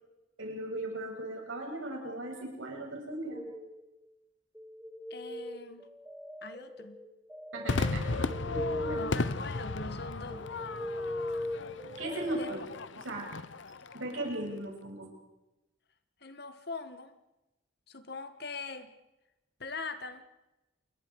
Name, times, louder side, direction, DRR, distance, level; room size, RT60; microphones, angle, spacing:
voice 1, 0.4-3.5 7.5-9.2 12.0-12.7 13.0-13.3 13.9-15.1, right 1 dB, 80° right, 0 dB, 7.1 m, -38 dB
sound 1, 3.3-4.1 4.6-12.6, left 1 dB, 5° right, 1.3 m, -40 dB
voice 2, 5.1-5.9 6.4-7.0 9.0-10.5 12.4-12.5 16.2-17.1 17.9-18.9 19.6-20.2, left 3 dB, 55° left, 10 dB, 1.6 m, -42 dB
Crowd / Fireworks, 7.7-14.2, left 3 dB, 70° left, 0.8 m, -35 dB
28.5 x 22.5 x 4.9 m, 0.96 s
head